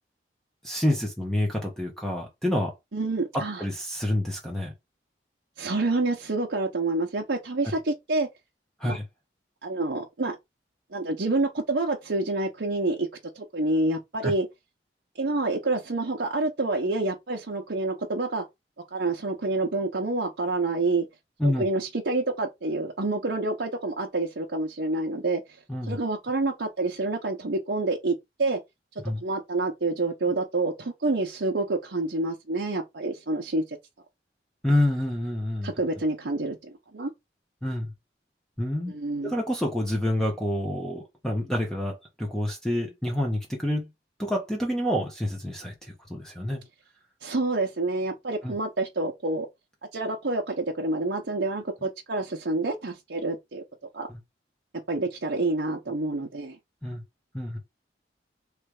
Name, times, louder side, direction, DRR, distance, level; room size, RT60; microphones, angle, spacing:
voice 1, 0.6-2.7 3.6-4.7 8.8-9.0 21.4-21.6 25.7-26.0 29.0-29.2 34.6-35.7 37.6-37.9 38.6-38.9 39.2-43.9 44.2-46.6 48.4-48.5 56.8-57.0 57.3-57.6, left 1 dB, 5° left, 1.1 m, -28 dB
voice 2, 2.9-3.6 5.6-8.3 8.8-9.0 9.6-10.4 10.9-13.1 13.3-14.5 15.2-18.4 18.9-21.1 21.4-25.4 25.9-28.6 29.2-33.6 35.6-37.1 38.9-39.4 47.2-49.5 49.9-53.6 53.9-54.1 54.9-56.6, right 2 dB, 75° right, 0.9 m, -28 dB
3.3 x 3.3 x 4.8 m
head